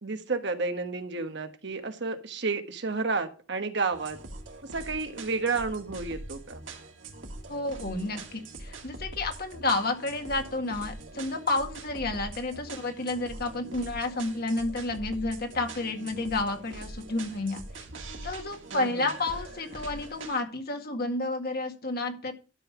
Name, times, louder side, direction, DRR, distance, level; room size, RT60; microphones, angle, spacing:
voice 1, 0.0-4.2 4.7-6.6 18.7-19.0, right 4 dB, 65° right, 7 dB, 1.3 m, -31 dB
sound 1, 3.9-20.4, right 2 dB, 85° right, 2.2 m, -43 dB
voice 2, 7.5-17.8 18.2-22.3, left 2 dB, 55° left, 4 dB, 2.0 m, -31 dB
12.5 x 5.5 x 6.1 m, 0.34 s
head